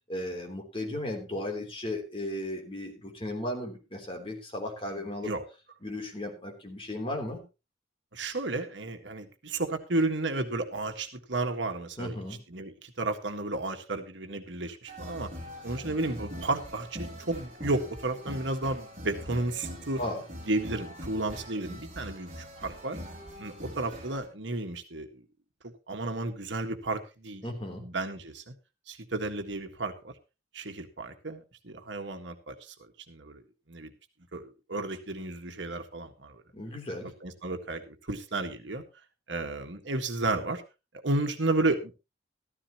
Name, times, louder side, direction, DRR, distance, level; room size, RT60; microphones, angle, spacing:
voice 1, 0.1-5.3 5.8-7.4 12.0-12.4 20.0-20.2 27.4-27.9 36.5-37.2, left 1 dB, 30° left, 2 dB, 3.2 m, -35 dB
voice 2, 4.9-5.4 8.1-12.2 12.5-15.3 15.6-20.0 20.5-23.0 23.4-25.1 25.6-27.4 27.7-28.5 28.9-30.1 30.5-32.7 33.1-33.4 33.7-33.9 34.3-36.4 37.2-38.8 39.3-40.6 40.9-42.0, right 2 dB, 70° right, 5 dB, 1.6 m, -32 dB
sound 1, 14.9-24.3, equal, 35° right, 4.3 m, -42 dB
14.0 x 13.5 x 3.0 m, 0.28 s
head